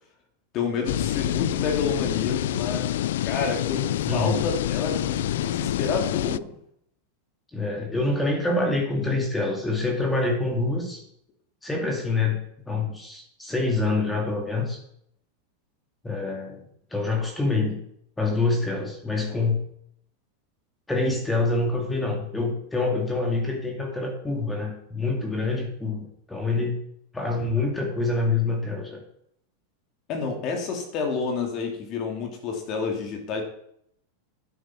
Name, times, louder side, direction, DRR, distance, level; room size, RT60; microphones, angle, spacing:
voice 1, 0.5-2.9 3.2-6.5 30.1-33.4, left 5 dB, 45° left, 3 dB, 2.7 m, -29 dB
sound 1, 0.9-6.4, left 13 dB, 75° left, 0.3 m, -27 dB
voice 2, 4.1-4.4 7.5-11.0 11.6-12.4 12.7-14.8 16.0-16.6 16.9-17.8 18.2-19.6 20.9-26.8 27.1-29.0, left 3 dB, 10° left, 1 dB, 2.2 m, -26 dB
9.6 x 8.0 x 5.9 m, 0.71 s
hypercardioid pair, 115°, 0 cm